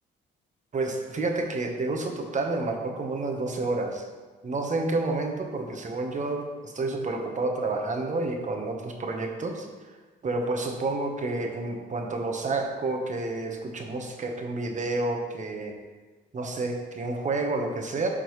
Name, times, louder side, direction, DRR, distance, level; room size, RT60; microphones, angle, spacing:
voice 1, 0.7-4.1 4.4-9.7 10.2-15.7 16.3-18.1, right 2 dB, 40° right, 2 dB, 1.1 m, -29 dB
11.5 x 3.8 x 3.1 m, 1.3 s
cardioid pair, 90°, 20 cm